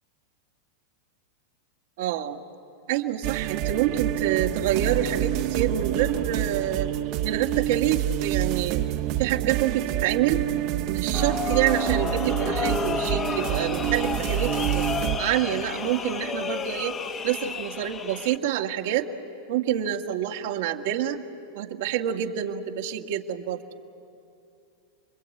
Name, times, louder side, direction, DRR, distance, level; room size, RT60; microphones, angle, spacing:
voice 1, 2.0-2.4 2.9-6.9 7.2-8.8 9.2-10.4 10.9-14.8 15.2-16.9 17.2-19.1 19.5-21.2 21.5-23.6, right 11 dB, 70° right, 3 dB, 1.9 m, -27 dB
sound 1, 3.2-15.2, right 13 dB, 55° right, 1.3 m, -27 dB
sound 2, 11.1-18.4, left 6 dB, 25° left, 1.1 m, -31 dB
29.5 x 22.0 x 8.6 m, 2.6 s
hypercardioid pair, 125°, 0 cm